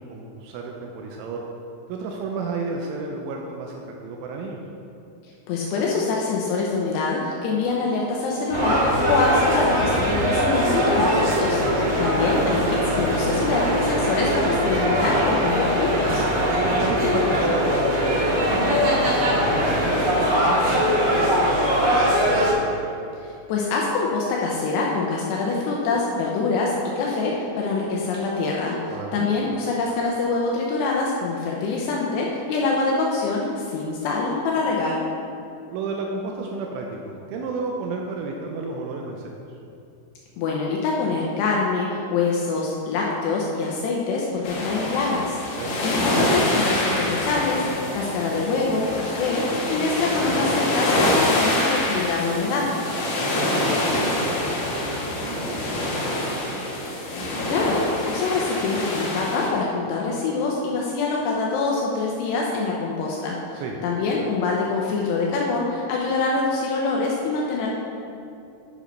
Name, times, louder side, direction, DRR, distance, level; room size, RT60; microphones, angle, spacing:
voice 1, 0.0-1.4 1.9-4.6 11.7-12.0 16.5-18.4 18.8-22.7 28.9-29.3 35.7-39.3 45.6-45.8 53.0-56.7 63.5-63.8, right 3 dB, 85° right, 0 dB, 3.0 m, -32 dB
voice 2, 5.5-16.3 23.2-35.0 40.4-45.4 45.8-52.7 57.5-67.7, left 3 dB, 90° left, -2 dB, 2.4 m, -25 dB
sound 1, 8.5-22.5, equal, 60° right, 1.8 m, -21 dB
sound 2, 44.4-59.5, left 1 dB, 70° left, 2.1 m, -25 dB
9.1 x 5.0 x 5.4 m, 2.6 s
omnidirectional pair, 5.8 m